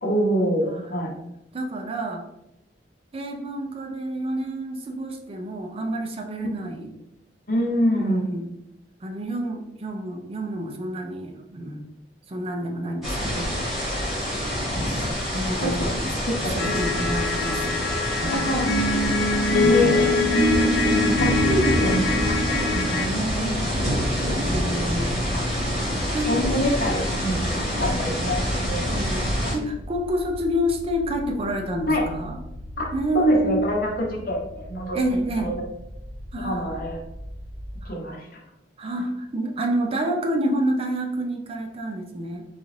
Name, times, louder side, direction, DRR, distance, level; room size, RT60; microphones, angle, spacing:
voice 1, 0.0-1.1 6.4-6.5 7.5-8.3 18.3-18.7 19.5-20.1 20.9-23.7 26.3-28.4 28.7-28.8 31.9-32.0 32.8-32.9 33.1-35.0 35.4-35.5 36.4-37.0 37.9-38.2, equal, 55° left, -1 dB, 0.8 m, -25 dB
voice 2, 0.7-1.0 1.5-2.2 3.1-6.9 8.0-8.5 9.0-11.8 12.3-13.6 14.8-17.8 18.1-18.5 19.6-20.3 23.1-23.8 24.5-25.4 26.0-26.4 28.9-32.4 32.9-33.7 34.9-35.6 36.3-36.7 37.8-37.9 38.8-42.5, right 1 dB, 35° right, 3 dB, 0.4 m, -29 dB
sound 1, 13.0-29.5, equal, ahead, 1.4 m, -27 dB
sound 2, 16.6-23.1, left 2 dB, 75° left, 0.5 m, -23 dB
sound 3, 19.1-37.9, equal, 80° right, 0.8 m, -40 dB
3.8 x 2.4 x 3.1 m, 0.84 s
head